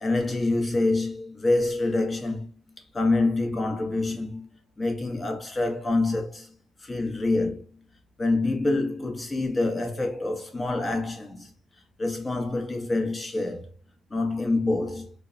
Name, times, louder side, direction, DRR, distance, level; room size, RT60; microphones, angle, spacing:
voice 1, 0.0-2.6 2.9-4.5 4.8-6.5 6.8-7.7 8.2-11.5 12.0-13.7 14.1-15.1, left 2 dB, 25° left, 0.8 m, -26 dB
2.2 x 2.1 x 3.7 m
cardioid pair, 80°, 0 cm